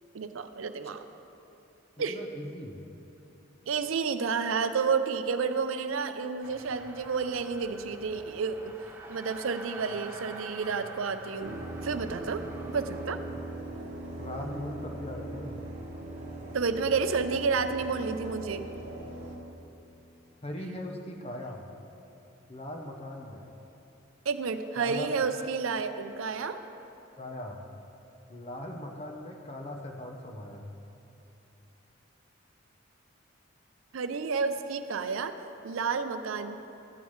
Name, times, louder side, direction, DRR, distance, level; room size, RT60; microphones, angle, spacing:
voice 1, 0.1-1.1 2.0-2.2 3.7-8.7 9.1-11.6 11.8-12.4 12.7-13.2 16.5-18.7 24.3-26.6 33.9-35.3 35.6-36.5, right 5 dB, 80° right, 9 dB, 0.5 m, -30 dB
voice 2, 2.1-2.8 14.2-15.6 20.4-21.7 22.5-23.4 24.8-25.1 27.2-27.6 28.3-30.7, left 1 dB, 30° left, 2 dB, 0.7 m, -39 dB
sound 1, 6.4-13.1, right 2 dB, 10° right, 0.7 m, -46 dB
sound 2, 11.4-19.4, right 2 dB, 35° right, 1.2 m, -40 dB
14.5 x 9.1 x 3.1 m, 2.9 s
head